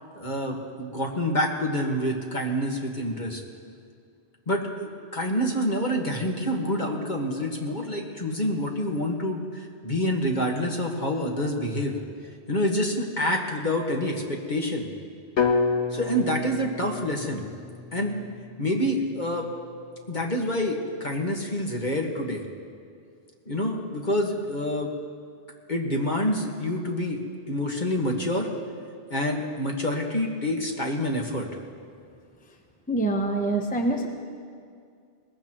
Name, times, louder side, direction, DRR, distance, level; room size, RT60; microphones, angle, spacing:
voice 1, 0.1-3.4 4.5-12.0 12.5-14.9 15.9-17.5 17.9-18.2 18.6-19.5 20.1-22.4 23.5-24.9 25.7-28.5 29.1-31.5, equal, 45° left, 0 dB, 1.7 m, -27 dB
sound 1, 15.4-19.4, left 4 dB, 85° left, 1.5 m, -29 dB
voice 2, 32.9-34.1, right 2 dB, 10° left, 3 dB, 0.8 m, -25 dB
21.5 x 19.5 x 3.0 m, 2.3 s
omnidirectional pair, 1.1 m